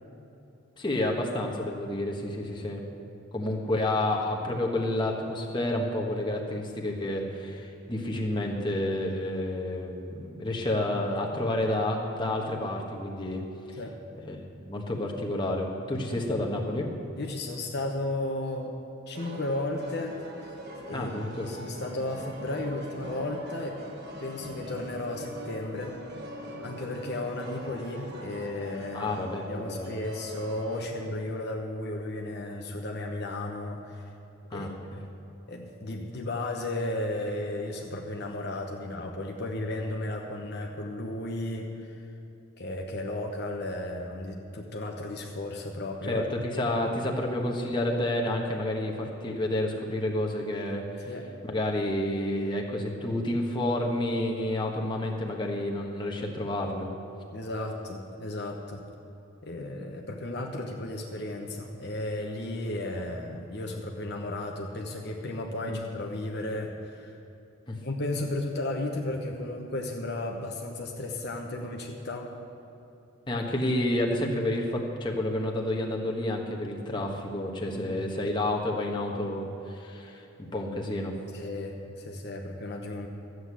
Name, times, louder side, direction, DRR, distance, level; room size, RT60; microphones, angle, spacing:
voice 1, 0.8-2.8 3.3-13.4 13.7-13.8 14.2-14.4 14.6-16.9 20.9-21.5 28.9-29.9 34.5-34.7 46.1-51.1 51.4-56.9 65.7-65.8 67.7-67.8 73.3-80.2 80.5-81.1, left 1 dB, 20° left, 0 dB, 1.3 m, -30 dB
voice 2, 15.9-16.2 17.2-18.8 19.1-20.2 20.4-20.5 20.8-21.1 21.4-23.8 24.2-26.0 26.6-29.1 29.5-34.0 34.5-34.7 35.5-42.1 42.6-46.2 51.1-51.2 57.3-58.8 59.4-67.2 67.8-72.3 73.4-73.5 77.7-78.2 81.3-83.1, left 1 dB, 50° left, 1 dB, 1.0 m, -34 dB
sound 1, 19.1-30.9, right 1 dB, 50° right, 1.4 m, -43 dB
13.5 x 8.0 x 8.2 m, 2.9 s
head